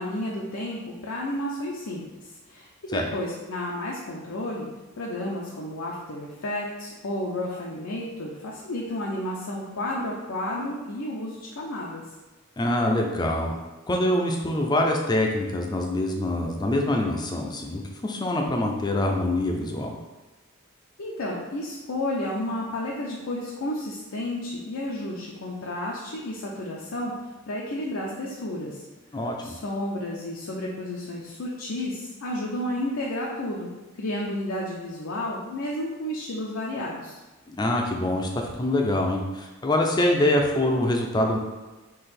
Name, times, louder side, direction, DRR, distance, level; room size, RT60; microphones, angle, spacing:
voice 1, 0.0-4.7 5.0-12.0 21.0-27.1 27.5-28.8 29.4-33.7 34.0-37.2, left 1 dB, 85° left, -4 dB, 0.6 m, -32 dB
voice 2, 12.6-13.6 13.9-19.9 29.1-29.5 37.5-41.4, left 1 dB, 20° left, 1 dB, 0.4 m, -25 dB
3.8 x 2.8 x 4.2 m, 1.2 s
head